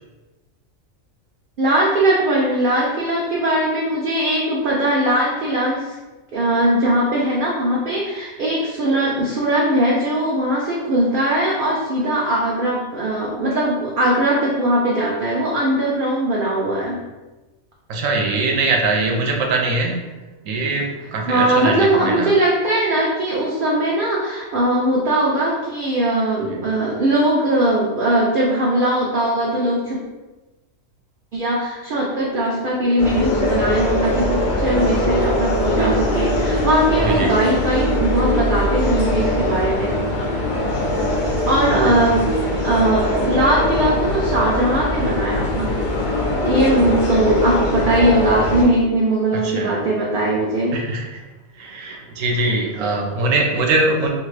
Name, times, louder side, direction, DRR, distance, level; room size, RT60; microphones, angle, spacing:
voice 1, 1.6-6.0 6.3-17.0 21.2-30.0 31.3-39.9 41.5-42.2 42.6-45.7 46.4-50.8, right 1 dB, 60° right, -4 dB, 0.5 m, -20 dB
voice 2, 17.9-20.0 20.5-22.3 26.5-26.6 37.0-37.3 41.7-42.0 49.3-49.9 50.7-51.2 51.6-54.1, right 3 dB, 80° right, 1 dB, 1.0 m, -22 dB
sound 1, 33.0-48.6, left 1 dB, 65° left, 0.5 m, -21 dB
2.6 x 2.4 x 3.2 m, 1.1 s
omnidirectional pair, 1.3 m